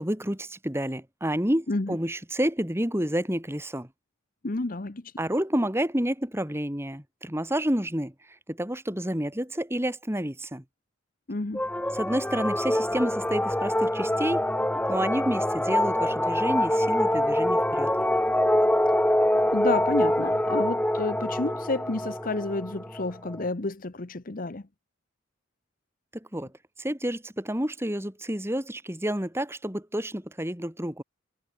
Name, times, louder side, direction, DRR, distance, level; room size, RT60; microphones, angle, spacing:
voice 1, 0.0-3.9 5.2-8.1 8.5-10.6 11.9-14.5 14.9-17.9 26.1-26.5 26.8-31.0, equal, 10° right, 2.5 m, -29 dB
voice 2, 4.4-5.0 11.3-11.6 19.5-24.6, left 2 dB, 45° left, 0.9 m, -30 dB
sound 1, 11.5-23.4, left 1 dB, 5° left, 2.1 m, -25 dB
head